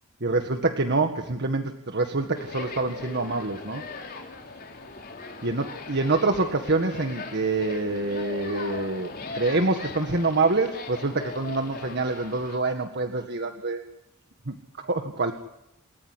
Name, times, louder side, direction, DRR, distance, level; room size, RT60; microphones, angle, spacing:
voice 1, 0.2-3.8 5.4-13.8 14.5-15.3, right 3 dB, 55° right, 6 dB, 1.8 m, -26 dB
sound 1, 2.3-12.6, left 3 dB, 45° left, 4.3 m, -39 dB
28.0 x 14.0 x 9.7 m, 0.84 s
head